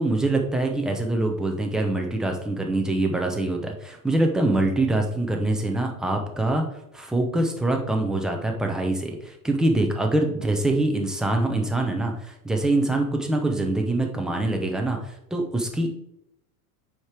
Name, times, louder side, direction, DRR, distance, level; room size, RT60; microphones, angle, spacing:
voice 1, 0.0-6.6 6.9-15.9, right 2 dB, ahead, 2 dB, 0.6 m, -24 dB
7.8 x 5.1 x 4.4 m, 0.79 s
supercardioid pair, 155°, 43 cm